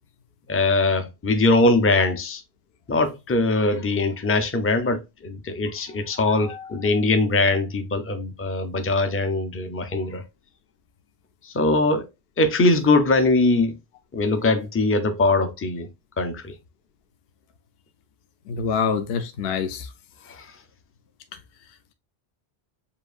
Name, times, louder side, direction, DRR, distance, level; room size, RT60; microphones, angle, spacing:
voice 1, 0.5-2.4 2.9-10.2 11.4-12.0 12.4-13.8 14.1-15.9 16.2-16.5 20.3-20.5, left 2 dB, 15° left, 0.4 m, -21 dB
voice 2, 18.5-19.9, left 6 dB, 65° left, 0.8 m, -26 dB
6.9 x 2.6 x 2.4 m
omnidirectional pair, 1.1 m